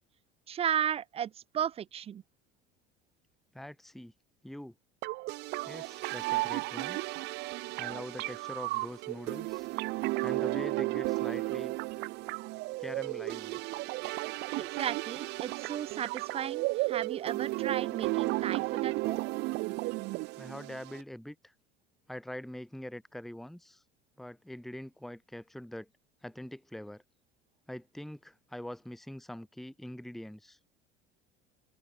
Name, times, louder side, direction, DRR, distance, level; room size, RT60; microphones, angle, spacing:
voice 1, 0.5-2.2 14.5-19.2, right 9 dB, 30° right, 0.8 m, -34 dB
voice 2, 3.5-4.1 4.4-4.7 5.7-7.0 7.8-9.7 10.2-11.7 12.8-13.6 20.4-21.5 22.1-23.8 24.2-25.9 26.2-27.0 27.7-30.6, left 1 dB, ahead, 1.3 m, -43 dB
sound 1, 5.0-21.0, right 22 dB, 60° right, 0.8 m, -34 dB
open air
cardioid pair, 130°, 19 cm